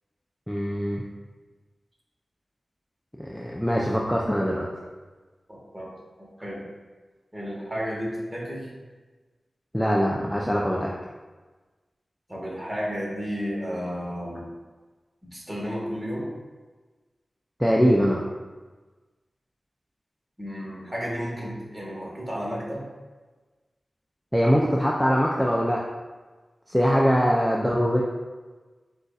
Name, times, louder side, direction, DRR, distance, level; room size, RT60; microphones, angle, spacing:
voice 1, 0.5-1.1 3.2-4.7 9.7-10.9 17.6-18.2 24.3-25.8 26.7-28.0, equal, 5° left, -3 dB, 0.5 m, -22 dB
voice 2, 5.5-5.9 6.2-6.7 7.3-8.7 12.3-14.5 15.2-16.3 20.4-22.9, equal, 20° right, -4 dB, 1.5 m, -32 dB
7.6 x 2.6 x 2.4 m, 1.3 s
wide cardioid pair, 65°, 0 cm